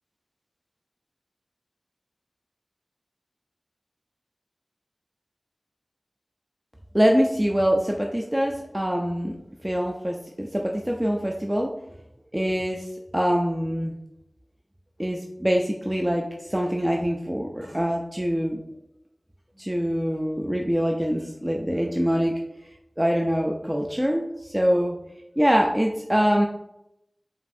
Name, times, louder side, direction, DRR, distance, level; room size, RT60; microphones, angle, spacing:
voice 1, 6.9-9.4 9.6-11.7 12.3-13.9 15.0-18.6 19.6-22.3 23.0-25.0 25.4-26.5, equal, 15° right, 0 dB, 0.4 m, -24 dB
5.2 x 2.6 x 2.6 m, 0.84 s
wide cardioid pair, 45°, 0 cm